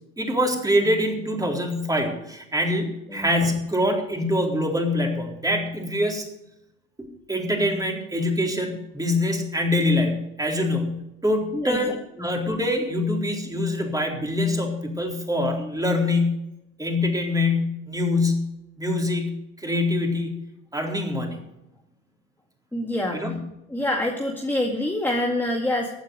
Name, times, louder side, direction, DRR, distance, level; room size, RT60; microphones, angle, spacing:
voice 1, 0.2-6.3 7.0-16.4 16.8-18.5 18.8-20.4 20.7-21.4 23.1-23.4, left 1 dB, 10° right, 1 dB, 4.0 m, -24 dB
voice 2, 11.5-12.3 22.7-23.3 23.7-25.9, left 1 dB, 5° left, 0 dB, 2.1 m, -26 dB
15.5 x 8.9 x 6.4 m, 0.86 s
hypercardioid pair, 80°, 37 cm